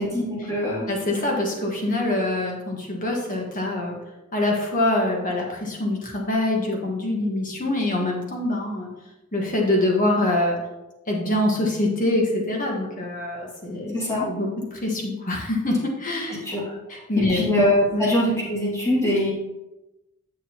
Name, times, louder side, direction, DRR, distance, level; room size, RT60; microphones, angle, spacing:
voice 1, 0.0-0.9 13.9-14.3 16.4-16.7 17.2-19.3, left 1 dB, 15° left, -6 dB, 2.2 m, -23 dB
voice 2, 0.9-4.0 4.3-8.9 9.3-10.6 11.1-13.9 14.3-16.4 16.9-17.5 17.9-18.0, left 1 dB, 40° left, -1 dB, 1.6 m, -24 dB
8.7 x 6.5 x 3.0 m, 1.0 s
head